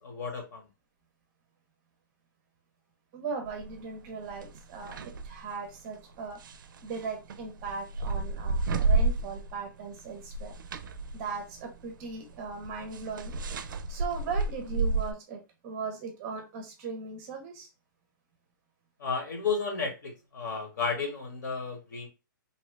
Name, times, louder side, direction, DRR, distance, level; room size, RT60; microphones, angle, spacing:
voice 1, 0.0-0.7 19.0-22.1, left 5 dB, 60° left, 1.2 m, -33 dB
voice 2, 3.1-6.4 6.8-10.5 11.1-13.3 13.9-17.7, right 5 dB, 20° right, 0.6 m, -38 dB
sound 1, 3.5-3.8 4.3-5.4 6.3-9.7 10.0-15.1, right 3 dB, 70° right, 0.4 m, -31 dB
2.8 x 2.2 x 3.1 m
hypercardioid pair, 160°, 11 cm